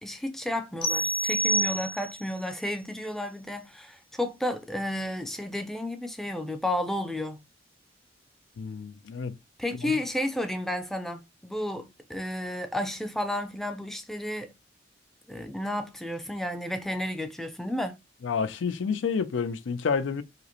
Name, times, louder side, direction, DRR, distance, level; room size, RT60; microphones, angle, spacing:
voice 1, 0.0-7.4 9.6-14.5 15.3-18.0, left 1 dB, ahead, 0.4 m, -32 dB
sound 1, 0.8-2.3, right 1 dB, 25° left, 0.8 m, -27 dB
voice 2, 8.6-9.3 9.8-10.0 18.2-20.2, left 5 dB, 85° left, 0.4 m, -29 dB
5.0 x 2.1 x 2.9 m
head